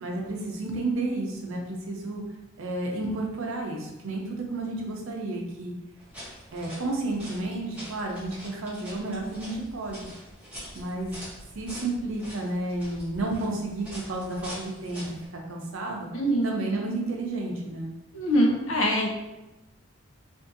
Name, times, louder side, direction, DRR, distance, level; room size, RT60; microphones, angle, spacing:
voice 1, 0.0-2.2 2.6-5.7 6.5-10.0 10.7-11.2 11.5-16.1 16.4-17.9, right 2 dB, 75° right, 0 dB, 0.6 m, -31 dB
sound 1, 6.0-15.3, equal, 5° right, 0.8 m, -44 dB
voice 2, 16.1-16.6 18.1-19.1, equal, 75° left, -1 dB, 0.6 m, -23 dB
2.6 x 2.5 x 2.5 m, 0.97 s
head